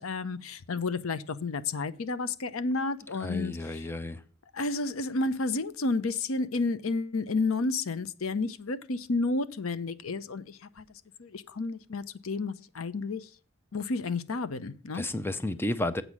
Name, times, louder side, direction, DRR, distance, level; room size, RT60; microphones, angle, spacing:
voice 1, 0.0-3.9 4.5-10.8 11.2-13.3 13.7-15.1, left 3 dB, 75° left, 0.7 m, -31 dB
voice 2, 3.2-4.2 14.9-16.0, left 1 dB, 10° left, 0.5 m, -32 dB
8.1 x 5.1 x 7.2 m
head